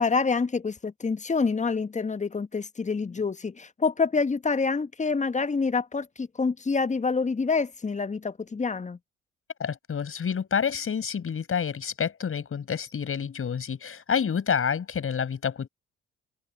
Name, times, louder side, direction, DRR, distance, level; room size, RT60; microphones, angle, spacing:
voice 1, 0.0-9.0, left 4 dB, 20° left, 1.5 m, -27 dB
voice 2, 9.6-15.7, left 7 dB, 40° left, 6.8 m, -28 dB
open air
figure-of-eight pair, 45°, 33 cm